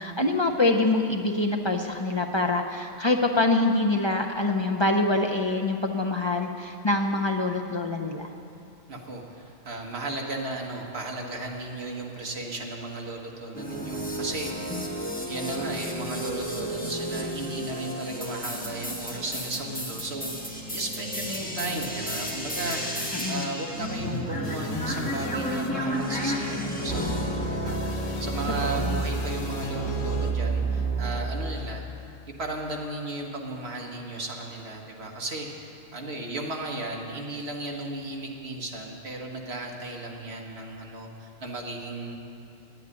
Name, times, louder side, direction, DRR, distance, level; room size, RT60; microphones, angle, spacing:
voice 1, 0.0-8.3 14.7-14.8 23.1-23.4 28.6-29.0, left 2 dB, 40° left, 1 dB, 0.4 m, -25 dB
voice 2, 8.9-27.4 27.6-31.8 32.4-42.1, right 2 dB, 55° right, 0 dB, 1.7 m, -35 dB
sound 1, 13.5-31.5, right 2 dB, 5° left, 1.2 m, -31 dB
sound 2, 24.4-30.3, left 4 dB, 75° left, 1.3 m, -38 dB
9.5 x 8.9 x 9.7 m, 2.6 s
omnidirectional pair, 1.3 m